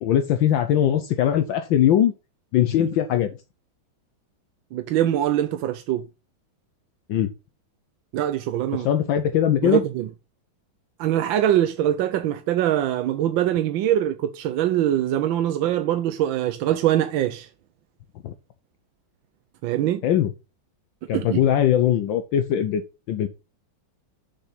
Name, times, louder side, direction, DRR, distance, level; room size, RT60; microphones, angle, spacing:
voice 1, 0.0-2.1 2.5-3.3 7.1-7.3 8.8-9.8 18.2-18.3 20.0-20.3 21.1-22.8 23.1-23.3, left 10 dB, 70° left, 1.4 m, -20 dB
voice 2, 4.7-6.0 8.1-8.9 9.6-10.1 11.0-17.5 19.6-20.0 21.1-21.4, right 12 dB, 75° right, 1.3 m, -23 dB
6.5 x 6.1 x 5.7 m
omnidirectional pair, 2.3 m